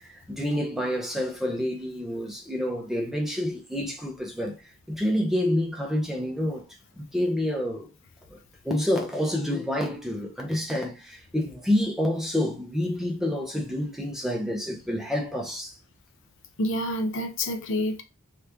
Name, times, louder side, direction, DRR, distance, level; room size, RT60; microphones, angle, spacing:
voice 1, 0.0-4.6 4.9-6.6 7.0-7.9 8.3-8.4 8.6-15.8, left 1 dB, ahead, 0.6 m, -28 dB
voice 2, 16.6-18.0, left 1 dB, 60° left, 0.5 m, -28 dB
2.9 x 2.4 x 3.4 m
head